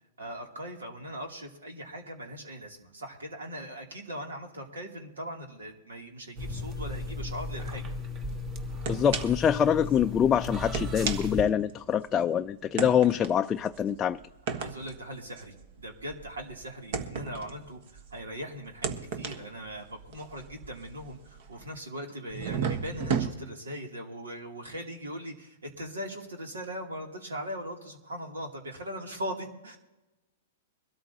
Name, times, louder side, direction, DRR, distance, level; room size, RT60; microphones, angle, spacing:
voice 1, 0.2-7.9 14.5-29.8, equal, 90° right, 2 dB, 2.8 m, -40 dB
sound 1, 6.4-11.4, left 2 dB, 30° right, 1.3 m, -35 dB
sound 2, 8.3-8.4 8.8-9.5 9.8-10.0 10.6-12.1 12.8-18.3 18.7-21.8 22.3-23.3, right 6 dB, 55° right, 1.3 m, -35 dB
voice 2, 8.9-14.2, left 8 dB, 20° left, 7 dB, 0.4 m, -25 dB
23.0 x 13.0 x 2.8 m, 1.0 s
hypercardioid pair, 120°, 0 cm